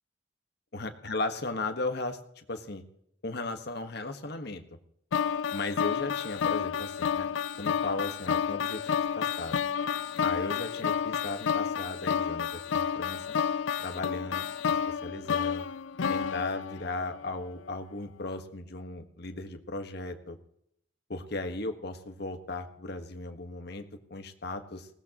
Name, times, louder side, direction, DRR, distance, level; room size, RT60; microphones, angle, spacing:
voice 1, 0.7-2.8 3.2-4.6 5.5-7.3 7.6-9.6 10.2-13.3 13.8-14.5 14.9-15.7 16.1-20.4 21.1-23.8 24.1-24.9, left 2 dB, 55° left, 6 dB, 1.5 m, -36 dB
sound 1, 5.1-17.3, left 7 dB, 80° left, 0.5 m, -30 dB
20.5 x 16.5 x 3.0 m, 0.71 s
head